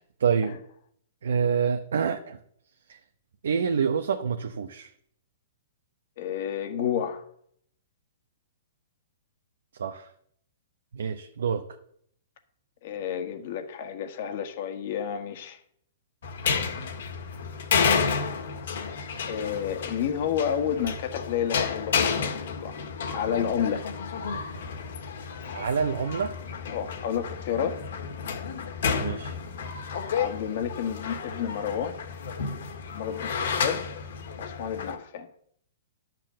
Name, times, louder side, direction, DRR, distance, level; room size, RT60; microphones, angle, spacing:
voice 1, 0.2-0.6 1.2-2.4 2.9-3.0 3.4-4.9 9.8-10.1 10.9-11.7 24.2-24.4 25.5-26.4 29.0-29.4, right 6 dB, 80° right, 0.8 m, -27 dB
voice 2, 6.2-7.3 12.8-15.6 17.2-17.3 19.3-22.8 23.1-23.9 26.7-27.8 30.1-32.0 32.9-33.9 34.4-35.3, left 8 dB, 55° left, 1.6 m, -30 dB
sound 1, 16.2-35.0, left 6 dB, 70° left, 1.8 m, -31 dB
10.5 x 6.1 x 7.5 m
hypercardioid pair, 140°, 0 cm